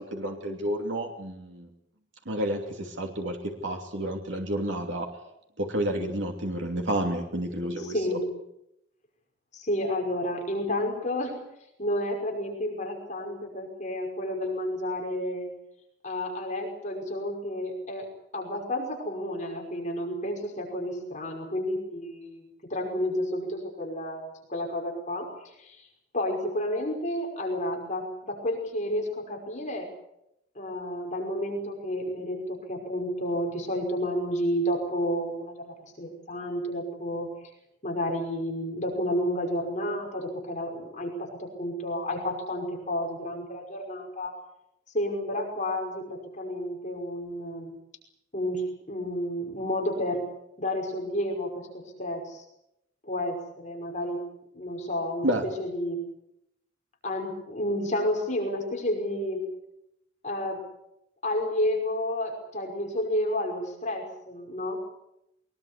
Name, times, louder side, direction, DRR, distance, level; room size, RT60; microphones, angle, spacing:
voice 1, 0.0-1.7 2.2-5.1 5.6-8.2 55.2-55.4, right 1 dB, 75° right, 2 dB, 2.9 m, -30 dB
voice 2, 7.8-8.3 9.5-11.4 11.8-15.5 16.0-18.1 18.3-22.4 22.7-25.8 26.1-29.9 30.6-37.3 37.8-44.3 44.9-47.7 48.3-50.2 50.6-52.4 53.0-54.2 54.5-55.3 55.6-56.0 57.0-59.4 60.2-60.6 61.2-64.8, left 1 dB, 40° left, 1 dB, 5.6 m, -31 dB
23.0 x 20.5 x 8.4 m, 0.81 s
head